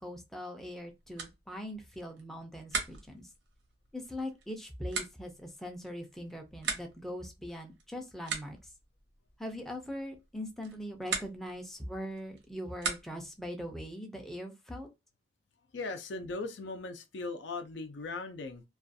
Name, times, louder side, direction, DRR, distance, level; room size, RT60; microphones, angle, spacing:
voice 1, 0.0-3.3 3.9-8.7 9.4-14.9, equal, ahead, 0.4 m, -41 dB
sound 1, 0.8-13.4, right 4 dB, 80° right, 0.8 m, -42 dB
voice 2, 15.7-18.6, left 3 dB, 75° left, 0.5 m, -38 dB
2.4 x 2.2 x 2.6 m
head